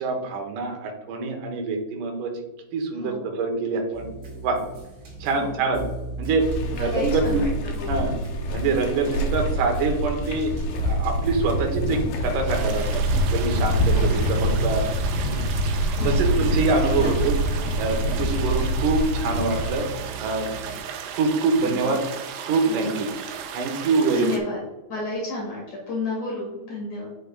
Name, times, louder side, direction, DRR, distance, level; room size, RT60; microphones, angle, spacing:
voice 1, 0.0-2.3 2.7-4.1 4.4-4.6 5.2-5.8 6.2-6.5 6.8-7.4 7.9-8.1 8.5-10.5 10.8-13.0 13.3-14.8 15.2-15.4 16.0-17.4 17.8-19.9 20.2-20.5 21.1-22.0 22.4-23.1 23.5-24.3, right 4 dB, 75° right, 3 dB, 2.4 m, -25 dB
voice 2, 2.9-3.4 5.4-5.5 6.7-7.5 7.7-8.1 9.1-9.2 13.9-14.3 15.9-16.4 17.0-17.1 21.6-22.0 22.7-23.1 23.8-24.6 24.9-27.1, left 2 dB, 55° left, -3 dB, 2.8 m, -32 dB
sound 1, 3.9-20.8, right 2 dB, 40° right, 2.3 m, -37 dB
sound 2, 6.4-19.7, equal, 70° left, 2.4 m, -25 dB
sound 3, 12.5-24.4, right 8 dB, 90° right, 2.4 m, -36 dB
8.2 x 6.9 x 2.3 m, 1.1 s
omnidirectional pair, 4.0 m